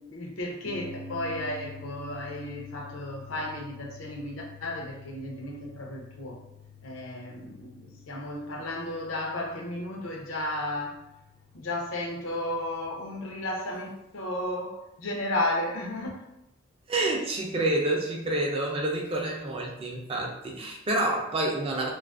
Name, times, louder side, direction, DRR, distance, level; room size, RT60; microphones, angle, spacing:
voice 1, 0.0-6.4 6.8-11.0 11.5-16.2, left 1 dB, 80° left, 0 dB, 0.6 m, -33 dB
sound 1, 0.7-13.6, left 3 dB, 90° right, 0.4 m, -48 dB
voice 2, 16.9-21.9, right 2 dB, 30° right, -1 dB, 0.4 m, -28 dB
2.5 x 2.4 x 2.3 m, 0.87 s
head